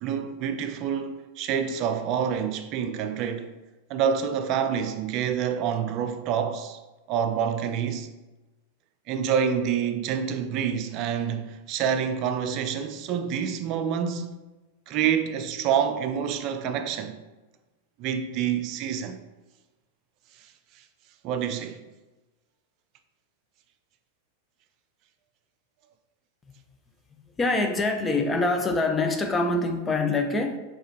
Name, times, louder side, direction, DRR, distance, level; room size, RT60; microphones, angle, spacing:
voice 1, 0.0-3.5 3.9-6.8 7.1-8.1 9.1-14.4 14.9-17.2 18.0-19.2 21.2-21.8, right 8 dB, 45° right, 0.4 m, -27 dB
voice 2, 27.4-30.6, left 2 dB, 15° left, 0.5 m, -25 dB
4.6 x 3.0 x 3.3 m
hypercardioid pair, 105°, 0 cm